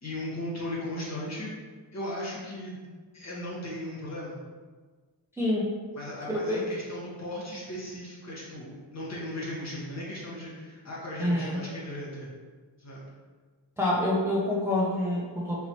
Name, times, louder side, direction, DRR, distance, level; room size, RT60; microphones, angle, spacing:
voice 1, 0.0-1.5 1.9-2.8 3.1-4.4 5.9-12.3 12.8-13.0, left 1 dB, 40° left, -6 dB, 1.3 m, -37 dB
voice 2, 5.4-5.7 6.3-6.6 11.2-11.6 13.8-15.7, left 1 dB, 5° right, -6 dB, 0.4 m, -27 dB
4.1 x 2.7 x 3.0 m, 1.5 s
cardioid pair, 110°, 43 cm